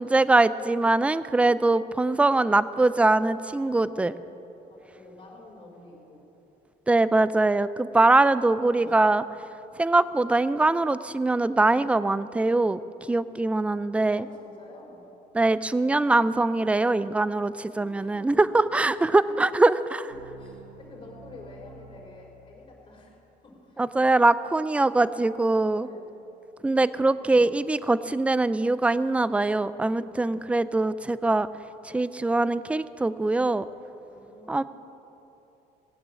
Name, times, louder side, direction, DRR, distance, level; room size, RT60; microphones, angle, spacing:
voice 1, 0.0-4.1 6.9-9.2 9.8-12.8 13.1-14.2 15.3-20.0 23.8-25.9 26.6-31.5 31.8-33.7 34.5-34.6, right 2 dB, 5° right, 16 dB, 0.4 m, -22 dB
voice 2, 4.0-6.2 8.5-9.0 14.2-15.0 17.7-18.4 18.9-19.3 19.7-23.2 23.4-23.9 25.7-26.1 26.9-27.5 34.1-34.6, left 2 dB, 30° left, -1 dB, 4.3 m, -49 dB
sound 1, 20.1-22.9, right 3 dB, 80° right, 0.9 m, -50 dB
18.0 x 8.8 x 7.5 m, 3.0 s
cardioid pair, 110°, 17 cm